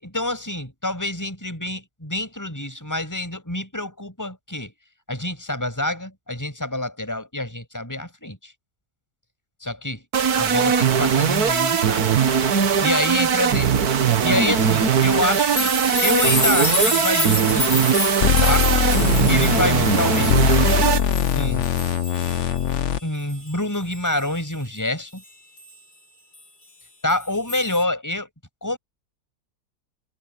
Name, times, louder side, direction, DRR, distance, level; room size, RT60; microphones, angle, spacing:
voice 1, 0.0-4.7 5.1-8.5 9.6-10.0 10.4-12.1 12.8-13.7 14.2-15.7 16.0-17.7 18.4-18.7 19.3-20.6 21.3-21.6 23.0-25.2 27.0-28.3 28.6-28.8, left 1 dB, 10° left, 6.6 m, -27 dB
sound 1, 10.1-21.0, right 7 dB, 80° right, 1.9 m, -20 dB
sound 2, 14.6-22.9 23.3-24.4 25.6-25.7 27.1-27.8, left 2 dB, 85° left, 5.6 m, -28 dB
sound 3, 18.2-23.0, left 9 dB, 55° left, 1.1 m, -21 dB
omnidirectional pair, 1.6 m